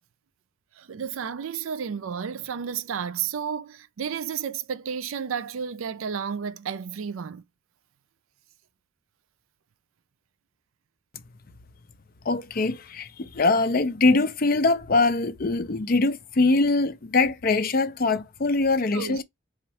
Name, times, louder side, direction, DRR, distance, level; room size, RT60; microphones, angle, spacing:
voice 1, 0.8-7.4 18.9-19.2, right 7 dB, 75° right, 0.4 m, -32 dB
voice 2, 12.2-19.2, left 3 dB, 45° left, 0.5 m, -23 dB
4.3 x 2.4 x 4.2 m
head